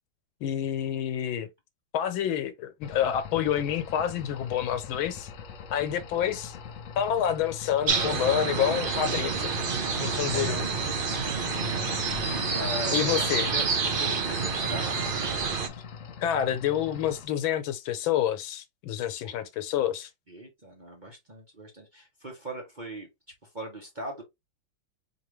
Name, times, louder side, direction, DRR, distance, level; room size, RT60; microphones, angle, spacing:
voice 1, 0.4-1.5 1.9-5.3 5.7-6.6 7.0-9.5 10.0-10.6 12.9-13.5 16.2-20.1, left 10 dB, 85° left, 1.6 m, -28 dB
sound 1, 2.8-17.3, left 6 dB, 70° left, 0.7 m, -42 dB
sound 2, 7.9-15.7, right 5 dB, 70° right, 0.5 m, -28 dB
voice 2, 10.3-10.6 11.1-11.7 12.0-15.2 19.2-19.4 20.3-23.1 23.5-24.2, equal, 35° right, 0.9 m, -40 dB
4.6 x 3.0 x 3.1 m
omnidirectional pair, 2.1 m